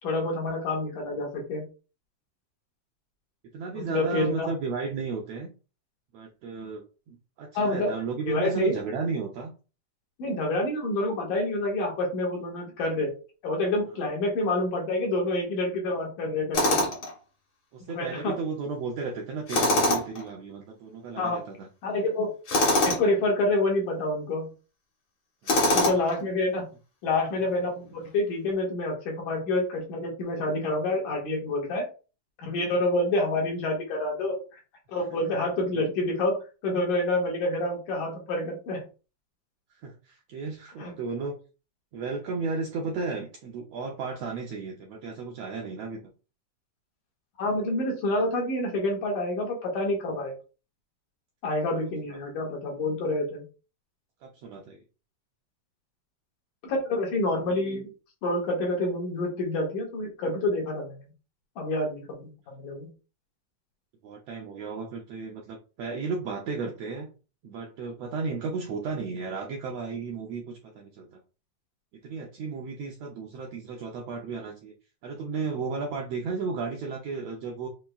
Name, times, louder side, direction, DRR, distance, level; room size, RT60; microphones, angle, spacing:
voice 1, 0.0-1.6 3.8-4.5 7.5-7.9 8.3-8.7 10.2-13.1 13.4-16.8 17.9-18.4 21.2-21.4 21.8-22.3 22.8-24.5 25.7-26.7 27.0-31.9 32.4-34.6 34.9-38.8 40.8-40.9 47.4-50.3 51.4-53.4 56.6-57.9 58.2-61.1 61.6-62.9, left 2 dB, 75° left, -1 dB, 3.0 m, -28 dB
voice 2, 3.5-5.5 6.1-9.5 17.7-21.7 25.4-25.8 39.8-41.4 41.9-46.0 54.2-54.8 64.0-67.1 67.4-71.2 72.0-74.7 75.0-77.7, right 4 dB, 80° right, 1 dB, 1.5 m, -34 dB
Tools, 16.5-17.1 19.5-20.2 22.5-23.0 25.5-26.2, left 2 dB, 50° left, 1.8 m, -23 dB
7.4 x 3.0 x 2.3 m, 0.34 s
omnidirectional pair, 3.7 m